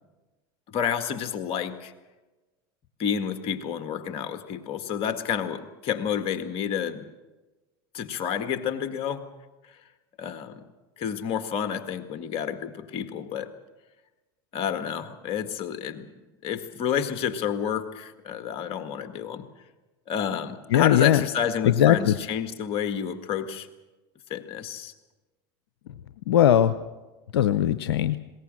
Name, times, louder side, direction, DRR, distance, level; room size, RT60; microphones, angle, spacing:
voice 1, 0.7-1.9 3.0-7.1 7.9-9.3 9.6-9.7 10.2-10.6 11.0-13.5 14.5-16.1 16.4-19.4 20.1-23.7 24.3-24.9, left 8 dB, 50° left, 8 dB, 1.8 m, -30 dB
voice 2, 20.7-21.2 21.6-22.1 26.3-26.7 27.3-28.2, left 11 dB, 90° left, 12 dB, 0.6 m, -19 dB
20.5 x 18.0 x 7.6 m, 1.2 s
hypercardioid pair, 90°, 13 cm